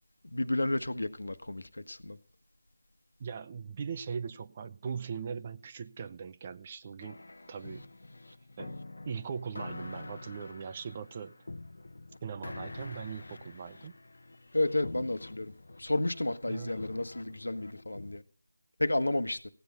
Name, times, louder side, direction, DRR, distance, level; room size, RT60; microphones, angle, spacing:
voice 1, 0.3-2.2 14.5-15.5 15.8-18.2 18.8-19.4, left 2 dB, 80° left, 1.3 m, -31 dB
voice 2, 3.2-7.2 7.5-7.9 8.6-8.8 9.0-11.5 12.2-13.9 16.5-16.8, right 6 dB, 25° right, 0.5 m, -40 dB
sound 1, 7.0-18.2, left 2 dB, 65° left, 0.8 m, -46 dB
16.5 x 9.5 x 5.4 m
figure-of-eight pair, 170°, 0 cm